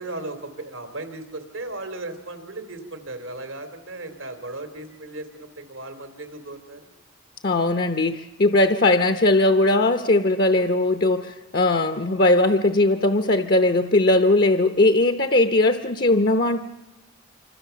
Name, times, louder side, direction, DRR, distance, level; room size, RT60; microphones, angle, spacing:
voice 1, 0.0-6.8, right 2 dB, 90° right, 8 dB, 2.9 m, -36 dB
voice 2, 7.4-16.6, left 2 dB, 45° left, 8 dB, 0.8 m, -19 dB
27.0 x 25.0 x 6.9 m, 1.1 s
head